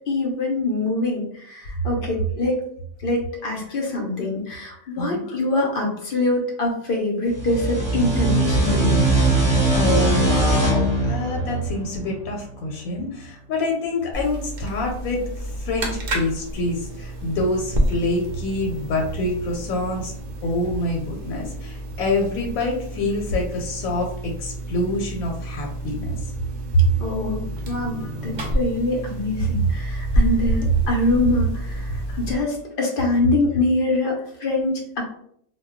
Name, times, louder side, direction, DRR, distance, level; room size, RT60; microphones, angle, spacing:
voice 1, 0.1-2.6 3.0-9.0 27.0-35.0, left 2 dB, 55° left, 0 dB, 0.6 m, -24 dB
sound 1, 7.3-12.6, right 2 dB, 5° right, 0.7 m, -21 dB
voice 2, 9.4-20.1 20.4-26.2 27.3-27.4 28.0-28.2 32.1-32.2, left 2 dB, 90° left, 0 dB, 1.0 m, -26 dB
sound 2, 14.1-32.3, right 1 dB, 60° right, 0.5 m, -29 dB
2.2 x 2.2 x 3.5 m, 0.67 s
omnidirectional pair, 1.4 m